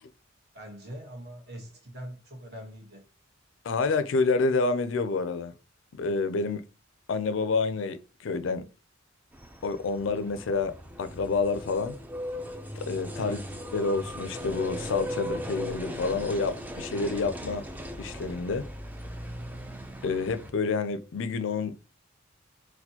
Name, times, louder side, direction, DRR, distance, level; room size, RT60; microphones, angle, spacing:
voice 1, 0.5-3.0 13.1-13.5, equal, 55° right, 1.1 m, -42 dB
voice 2, 3.6-5.5 5.9-6.7 7.1-8.7 9.6-12.0 12.9-13.4 13.7-17.7 18.0-18.7 20.0-21.9, left 4 dB, 65° left, 0.4 m, -28 dB
sound 1, 9.3-20.5, equal, 10° right, 0.4 m, -38 dB
4.2 x 2.2 x 2.8 m
head